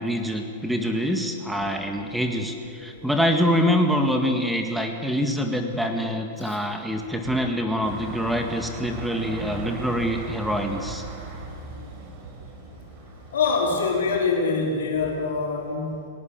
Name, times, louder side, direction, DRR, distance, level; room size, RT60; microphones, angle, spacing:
voice 1, 0.0-11.0, equal, 5° right, 4 dB, 1.9 m, -25 dB
sound 1, 7.8-14.3, right 3 dB, 45° right, 5.1 m, -38 dB
voice 2, 13.3-16.0, left 4 dB, 80° left, -1 dB, 5.0 m, -25 dB
19.0 x 18.5 x 7.6 m, 2.3 s
hypercardioid pair, 120°, 0 cm